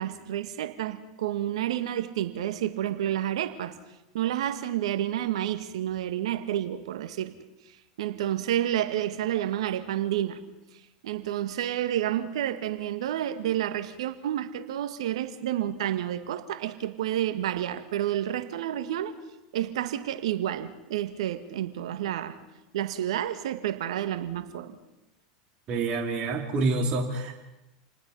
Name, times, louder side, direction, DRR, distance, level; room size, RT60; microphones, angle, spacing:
voice 1, 0.0-3.8 4.1-7.4 8.0-10.4 11.0-19.1 19.5-22.4 22.7-24.8, right 11 dB, 75° right, 10 dB, 1.9 m, -30 dB
voice 2, 25.7-27.3, right 3 dB, 40° right, 1 dB, 3.2 m, -27 dB
29.0 x 19.5 x 5.6 m, 0.97 s
hypercardioid pair, 95°, 3 cm